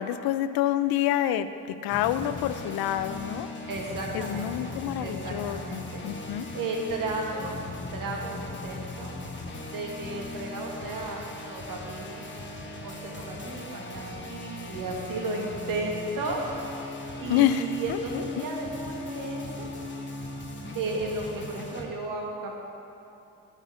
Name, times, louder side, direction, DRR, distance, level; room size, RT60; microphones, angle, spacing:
voice 1, 0.0-3.5 4.1-6.5 17.3-18.2, left 11 dB, 75° left, 12 dB, 0.5 m, -28 dB
sound 1, 1.9-21.8, left 2 dB, 30° left, 1.3 m, -38 dB
voice 2, 3.7-4.7 5.0-6.0 6.5-7.6 7.9-9.2 9.7-11.2 11.5-12.3 12.8-16.7 17.2-19.7 20.7-22.6, right 2 dB, 60° right, -1 dB, 1.8 m, -34 dB
8.2 x 5.4 x 7.2 m, 2.7 s
supercardioid pair, 70°, 37 cm